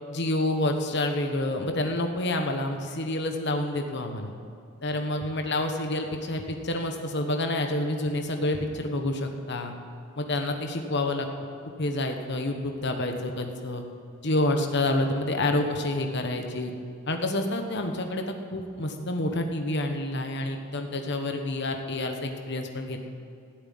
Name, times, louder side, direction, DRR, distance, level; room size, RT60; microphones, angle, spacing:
voice 1, 0.1-4.3 4.8-9.7 10.2-11.3 11.8-13.8 14.2-16.7 17.1-23.1, left 1 dB, 55° left, 4 dB, 1.2 m, -28 dB
14.0 x 8.0 x 9.5 m, 2.4 s
head